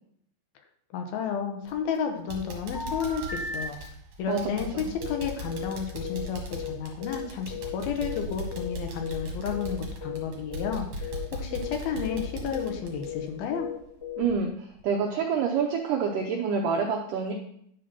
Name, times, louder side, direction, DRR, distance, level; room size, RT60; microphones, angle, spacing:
voice 1, 0.9-3.8 4.2-13.7, left 6 dB, 75° left, 4 dB, 2.7 m, -32 dB
sound 1, 1.6-2.0 2.3-13.9 14.2-14.3 14.8-14.9, right 1 dB, 55° right, 2.9 m, -39 dB
sound 2, 2.7-3.7 5.0-8.8 9.0-9.3 9.5-9.8 10.0-10.3 10.5-10.8 11.0-14.3, left 7 dB, 60° left, 0.7 m, -36 dB
voice 2, 4.3-4.9 14.2-17.3, right 5 dB, 90° right, 1 dB, 1.9 m, -27 dB
10.5 x 4.3 x 5.6 m, 0.71 s
omnidirectional pair, 4.7 m